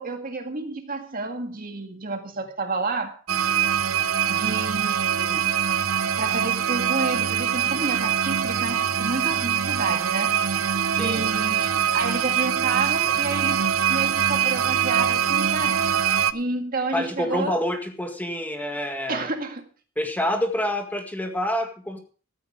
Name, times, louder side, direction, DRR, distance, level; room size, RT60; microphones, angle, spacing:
voice 1, 0.0-3.2 4.3-5.8 6.2-15.8 16.3-17.6 19.1-19.7, right 3 dB, 45° right, 2.0 m, -30 dB
sound 1, 3.3-16.3, right 9 dB, 80° right, 0.8 m, -23 dB
voice 2, 10.9-11.3 16.9-19.3 20.0-22.0, left 1 dB, 10° left, 1.9 m, -27 dB
15.5 x 13.5 x 3.6 m
head